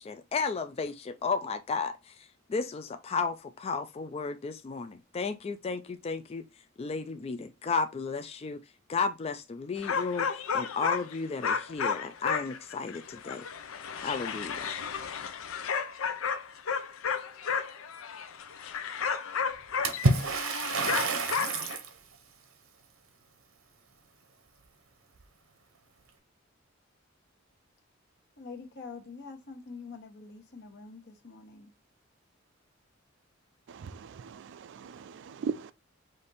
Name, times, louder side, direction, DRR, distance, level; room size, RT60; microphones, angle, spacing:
voice 1, 0.0-6.4 6.8-8.6 8.9-13.5 14.0-14.7, left 4 dB, 30° left, 0.3 m, -33 dB
sound 1, 9.8-11.2 11.4-21.8, left 6 dB, 85° left, 0.6 m, -33 dB
Water / Splash splatter, 19.8-21.9, right 3 dB, 90° right, 0.9 m, -28 dB
voice 2, 28.4-31.7, left 4 dB, 55° left, 1.1 m, -45 dB
voice 3, 33.7-35.7, right 5 dB, 60° right, 0.3 m, -39 dB
5.1 x 2.6 x 4.0 m
head